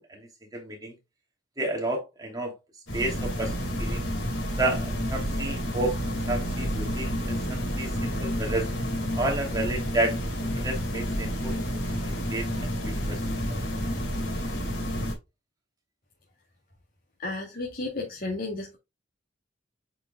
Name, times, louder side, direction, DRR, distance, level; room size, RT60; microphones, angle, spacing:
voice 1, 0.1-1.0 1.6-2.5 2.9-4.1 4.6-6.0 6.3-8.7 9.1-10.2 10.6-13.2, right 2 dB, 20° right, 2.8 m, -31 dB
sound 1, 2.9-15.1, equal, 70° left, 2.8 m, -30 dB
voice 2, 17.2-18.8, left 2 dB, 50° left, 2.2 m, -33 dB
8.3 x 5.5 x 2.2 m
head